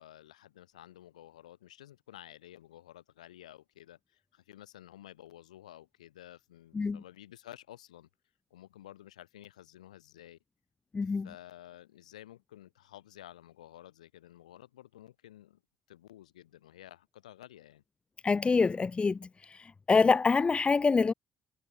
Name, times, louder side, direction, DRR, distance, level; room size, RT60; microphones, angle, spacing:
voice 1, 0.0-8.1 8.5-10.4 11.0-15.6 15.9-17.8, left 13 dB, 80° left, 5.2 m, -52 dB
voice 2, 10.9-11.3 18.2-21.1, left 4 dB, 30° left, 1.0 m, -26 dB
figure-of-eight pair, 50°, 4 cm